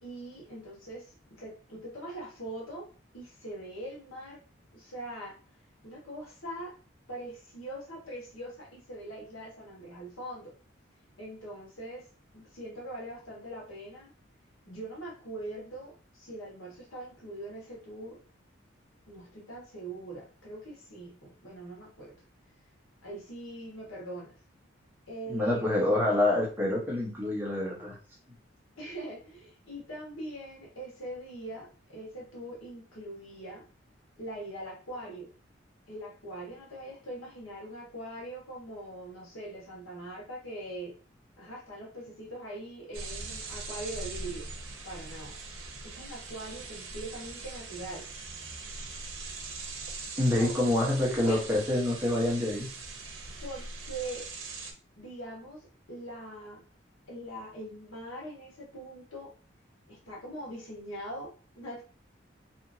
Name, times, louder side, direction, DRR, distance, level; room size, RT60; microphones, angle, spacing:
voice 1, 0.0-2.9 3.1-4.4 4.7-5.3 5.8-6.7 7.1-10.5 11.2-12.0 12.3-14.1 14.6-18.2 19.1-22.1 23.0-24.3 25.1-25.9 28.8-33.6 34.2-35.3 35.9-40.9 41.4-44.4 44.8-45.3 45.8-48.0 50.1-50.5 51.2-51.4 53.4-54.3 55.0-55.6 55.9-56.6 57.1-59.3 59.9-61.8, right 1 dB, 90° left, -3 dB, 1.3 m, -42 dB
voice 2, 25.3-28.0 50.2-52.7, left 1 dB, 10° right, -4 dB, 0.8 m, -27 dB
sound 1, 42.9-54.7, right 3 dB, 85° right, 0.6 m, -41 dB
2.8 x 2.5 x 2.6 m, 0.38 s
head